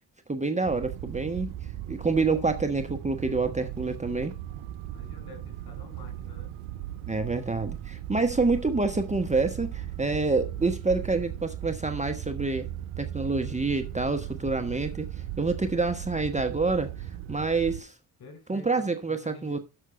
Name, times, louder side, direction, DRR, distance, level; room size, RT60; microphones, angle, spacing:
voice 1, 0.3-1.5 1.9-4.3 7.1-12.7 13.0-15.1 15.4-16.9 17.3-17.9 18.5-19.6, right 3 dB, 15° right, 1.1 m, -27 dB
sound 1, 0.6-17.8, right 12 dB, 80° right, 0.7 m, -37 dB
voice 2, 4.9-6.5 18.2-19.6, left 4 dB, 55° left, 4.6 m, -49 dB
6.8 x 6.2 x 5.1 m
hypercardioid pair, 45°, 45 cm